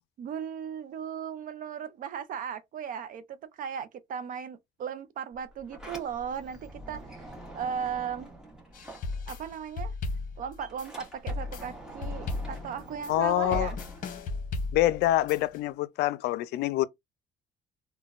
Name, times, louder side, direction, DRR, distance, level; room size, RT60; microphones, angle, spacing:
voice 1, 0.2-7.3 7.5-8.3 9.3-9.9 10.4-13.8, right 8 dB, 55° right, 0.5 m, -36 dB
Sliding door, 5.3-9.7 10.0-14.7, right 1 dB, 5° right, 1.3 m, -46 dB
sound 1, 8.7-15.6, left 3 dB, 55° left, 0.8 m, -35 dB
voice 2, 13.1-13.7 14.7-16.9, left 15 dB, 75° left, 0.4 m, -26 dB
3.8 x 2.2 x 2.4 m
cardioid pair, 110°, 17 cm